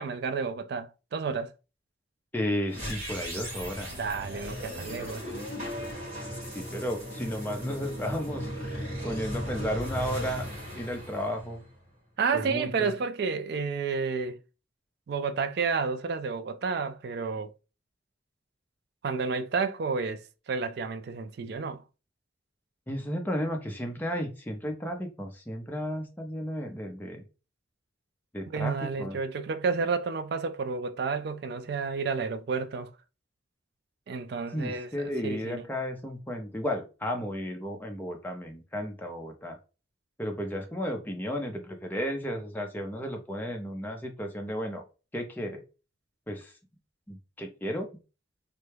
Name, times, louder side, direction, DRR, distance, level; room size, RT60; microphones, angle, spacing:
voice 1, 0.0-1.5 3.9-5.3 12.2-14.4 15.1-17.5 19.0-21.8 28.5-32.9 34.1-34.9 35.2-35.6, right 5 dB, 55° right, 0.3 m, -31 dB
voice 2, 2.3-3.9 6.5-10.5 10.7-11.7 12.3-13.0 22.9-27.2 28.3-29.2 34.5-39.6 40.2-44.8 45.1-45.6 46.3-46.5 47.1-47.9, equal, 10° left, 0.5 m, -33 dB
sound 1, 2.7-11.9, equal, 35° right, 1.9 m, -37 dB
3.2 x 2.2 x 3.3 m
head